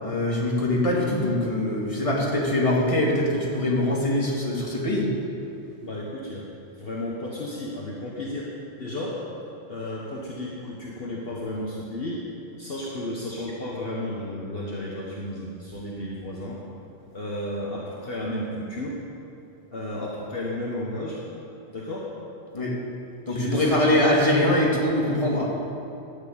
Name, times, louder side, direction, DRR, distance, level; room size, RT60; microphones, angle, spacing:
voice 1, 0.0-5.1 22.5-22.7 23.3-25.5, left 1 dB, 30° left, -4 dB, 2.4 m, -23 dB
voice 2, 5.8-6.4 6.7-8.5 8.8-9.2 9.7-12.2 12.6-16.6 17.1-19.0 19.7-21.2 21.7-22.1 23.3-24.0, left 1 dB, 55° left, -4 dB, 1.6 m, -33 dB
12.5 x 7.3 x 8.7 m, 2.9 s
omnidirectional pair, 1.2 m